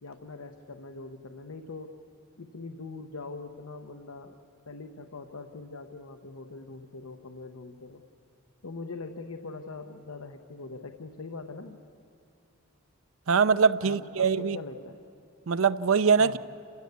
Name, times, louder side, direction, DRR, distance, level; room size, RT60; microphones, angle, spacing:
voice 1, 0.0-1.9 2.4-4.4 4.7-8.0 8.6-11.8 13.8-15.0 16.2-16.4, left 3 dB, 90° left, 6 dB, 1.0 m, -42 dB
voice 2, 13.3-14.6 15.5-16.4, right 5 dB, 70° right, 15 dB, 0.5 m, -23 dB
29.0 x 15.5 x 8.3 m, 2.4 s
head